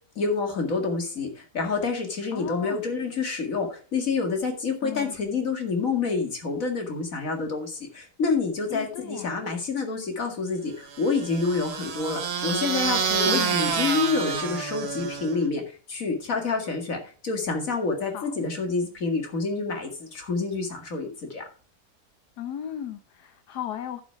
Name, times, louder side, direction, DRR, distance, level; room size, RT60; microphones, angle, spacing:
voice 1, 0.2-21.4, left 4 dB, 55° left, 2.5 m, -28 dB
voice 2, 2.3-2.8 4.8-5.2 8.7-9.3 13.2-13.6 18.0-18.3 22.4-24.0, left 10 dB, 70° left, 1.4 m, -36 dB
sound 1, 10.9-15.5, right 6 dB, 70° right, 1.8 m, -28 dB
11.5 x 6.1 x 4.7 m
omnidirectional pair, 1.8 m